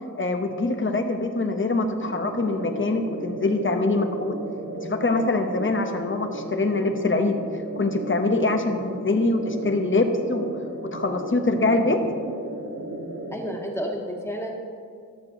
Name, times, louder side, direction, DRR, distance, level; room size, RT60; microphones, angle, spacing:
voice 1, 0.1-4.4 4.8-7.4 7.8-10.5 10.9-12.0, left 2 dB, 35° left, 5 dB, 1.0 m, -24 dB
sound 1, 2.0-13.4, right 1 dB, 55° right, 1.1 m, -35 dB
voice 2, 13.3-14.7, equal, 5° left, -1 dB, 1.8 m, -31 dB
12.5 x 6.7 x 3.9 m, 2.2 s
cardioid pair, 45°, 34 cm